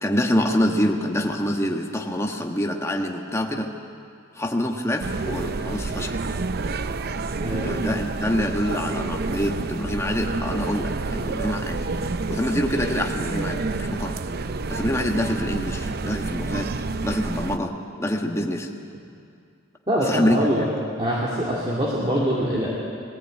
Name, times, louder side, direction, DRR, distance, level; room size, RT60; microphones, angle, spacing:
voice 1, 0.0-3.7 4.3-6.2 7.6-11.9 12.3-14.2 14.7-16.7 17.0-18.7 20.0-20.5, left 1 dB, 15° left, 2 dB, 1.4 m, -26 dB
sound 1, 5.0-17.6, right 3 dB, 50° right, 0.6 m, -29 dB
voice 2, 19.9-20.7 21.0-22.7, equal, 25° right, -6 dB, 2.6 m, -24 dB
19.5 x 15.5 x 9.0 m, 2.4 s
head